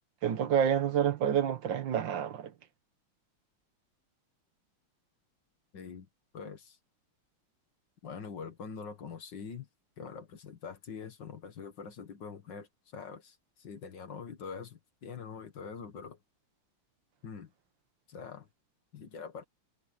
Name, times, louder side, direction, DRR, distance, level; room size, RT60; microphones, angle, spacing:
voice 1, 0.2-2.5, right 9 dB, 65° right, 1.7 m, -28 dB
voice 2, 5.7-6.1 6.3-6.8 8.0-9.7 10.0-16.2 17.2-17.5 18.1-18.5 18.9-19.4, left 6 dB, 55° left, 2.2 m, -44 dB
omnidirectional pair, 2.4 m